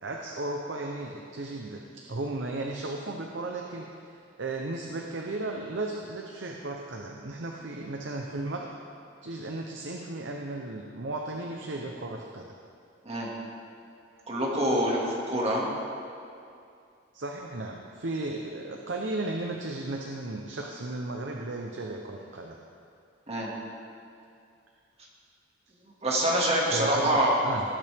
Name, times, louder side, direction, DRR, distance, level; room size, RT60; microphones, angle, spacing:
voice 1, 0.0-3.9 4.4-8.7 9.2-12.5 14.2-14.3 17.1-22.6 26.7-27.2 27.4-27.6, right 2 dB, 70° right, 1 dB, 0.8 m, -35 dB
voice 2, 14.3-15.7 23.3-23.5 26.0-27.3, right 1 dB, 35° right, -3 dB, 2.1 m, -25 dB
18.5 x 8.6 x 3.6 m, 2.5 s
head